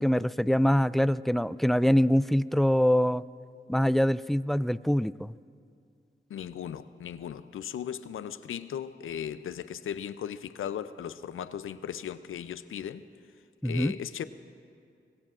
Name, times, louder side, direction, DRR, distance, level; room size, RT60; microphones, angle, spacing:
voice 1, 0.0-3.2 3.7-5.3 13.6-13.9, equal, ahead, 17 dB, 0.3 m, -24 dB
voice 2, 6.3-13.0 13.6-14.2, left 9 dB, 90° left, 13 dB, 0.5 m, -37 dB
24.5 x 21.5 x 2.5 m, 2.4 s
cardioid pair, 40°, 20 cm